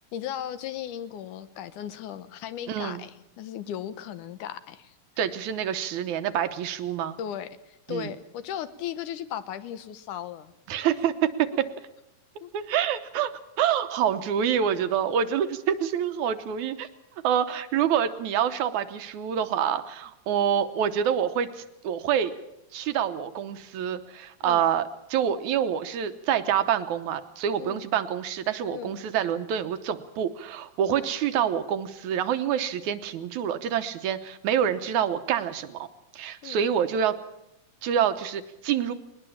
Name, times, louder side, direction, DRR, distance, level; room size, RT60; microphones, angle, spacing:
voice 1, 0.1-5.0 7.2-10.8 12.4-12.5 24.4-24.6 27.6-27.9 28.7-29.0 30.9-31.1 36.4-36.6, left 10 dB, 85° left, 13 dB, 2.5 m, -37 dB
voice 2, 2.7-3.1 5.2-7.2 7.9-8.1 10.7-11.5 12.5-13.3 13.6-16.9 17.2-22.3 22.7-35.9 36.1-37.2 37.8-38.9, right 9 dB, 75° right, 10 dB, 2.4 m, -27 dB
21.0 x 19.5 x 7.3 m, 0.87 s
omnidirectional pair, 3.5 m